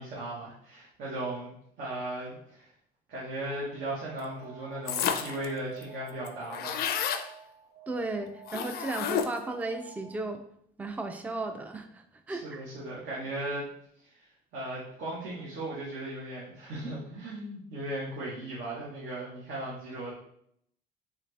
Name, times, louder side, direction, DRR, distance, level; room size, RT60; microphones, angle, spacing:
voice 1, 0.0-1.5 1.8-2.7 3.1-6.8 12.3-13.7 14.0-20.1, right 1 dB, 70° right, -7 dB, 1.3 m, -37 dB
Alarm, 3.5-10.5, right 7 dB, 40° right, 0.9 m, -51 dB
sound 1, 4.9-5.4 5.8-5.9 6.1-7.3 8.5-9.5, left 8 dB, 65° left, 0.5 m, -30 dB
voice 2, 7.9-10.4 10.8-12.6, right 2 dB, 10° right, 7 dB, 0.4 m, -35 dB
4.0 x 3.1 x 3.2 m, 0.69 s
cardioid pair, 110°, 17 cm